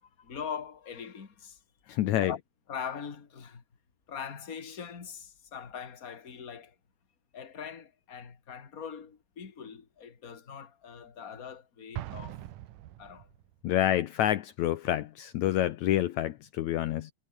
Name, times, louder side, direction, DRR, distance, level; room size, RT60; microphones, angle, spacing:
voice 1, 0.0-1.6 2.2-2.4 2.7-3.6 4.1-6.8 7.3-12.4 13.0-13.3, left 7 dB, 30° left, 2.4 m, -42 dB
voice 2, 1.9-2.3 13.6-17.1, left 13 dB, 70° left, 2.1 m, -28 dB
Explosion, 11.9-13.5, right 14 dB, 80° right, 2.6 m, -41 dB
omnidirectional pair, 3.6 m